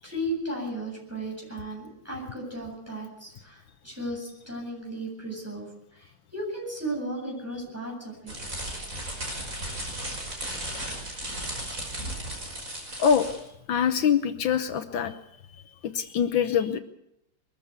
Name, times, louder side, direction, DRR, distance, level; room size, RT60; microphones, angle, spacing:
voice 1, 0.0-8.3, right 1 dB, 5° right, -2 dB, 7.9 m, -35 dB
sound 1, 8.3-13.5, right 1 dB, 40° right, 6.0 m, -35 dB
voice 2, 13.0-13.3 13.7-15.1 15.8-16.8, left 7 dB, 75° left, 9 dB, 1.6 m, -24 dB
22.0 x 14.5 x 8.2 m, 0.82 s
omnidirectional pair, 2.1 m